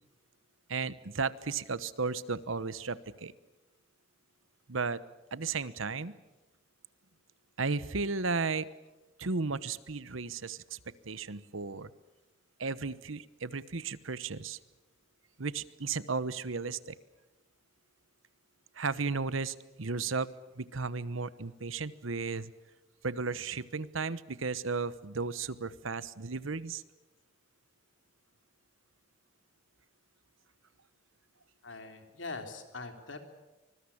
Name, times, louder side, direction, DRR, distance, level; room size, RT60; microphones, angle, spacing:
voice 1, 0.7-3.3 4.7-5.0 5.3-6.1 7.6-8.7 9.2-10.8 11.0-11.9 12.6-14.6 15.4-17.0 18.8-22.5 23.0-26.8, right 4 dB, 80° right, 17 dB, 1.1 m, -34 dB
voice 2, 31.6-33.2, left 3 dB, 65° left, 6 dB, 3.4 m, -42 dB
25.0 x 21.5 x 8.6 m, 1.1 s
head